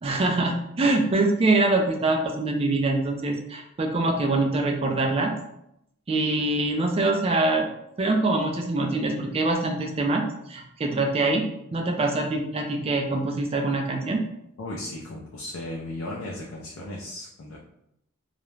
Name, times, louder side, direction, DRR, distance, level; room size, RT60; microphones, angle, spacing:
voice 1, 0.0-5.3 6.1-7.7 8.0-10.2 10.5-14.2, right 2 dB, 30° right, 3 dB, 0.3 m, -24 dB
voice 2, 14.6-17.6, left 1 dB, 85° left, -3 dB, 0.4 m, -36 dB
2.3 x 2.0 x 3.1 m, 0.79 s
head